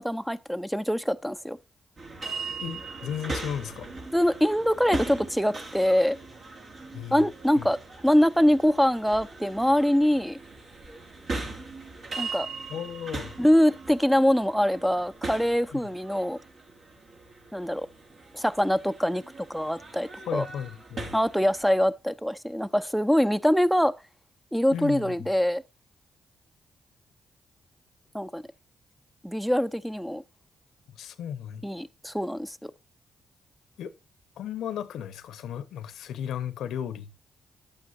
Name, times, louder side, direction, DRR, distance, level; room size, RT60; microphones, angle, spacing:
voice 1, 0.0-1.6 4.1-6.2 7.1-7.8 8.0-10.4 12.2-12.5 13.4-16.4 17.5-17.9 18.3-19.2 19.5-20.4 21.1-23.9 24.5-25.6 28.1-28.4 29.2-30.2 31.6-32.7, equal, ahead, 0.6 m, -24 dB
sound 1, 2.0-21.6, right 3 dB, 60° right, 4.5 m, -40 dB
voice 2, 2.6-3.9 6.9-7.2 7.6-7.7 12.7-13.4 15.7-15.8 20.2-21.1 24.7-25.3 31.0-31.7 33.8-33.9 34.4-37.3, left 9 dB, 80° left, 0.8 m, -35 dB
10.5 x 8.7 x 2.5 m
supercardioid pair, 50°, 0 cm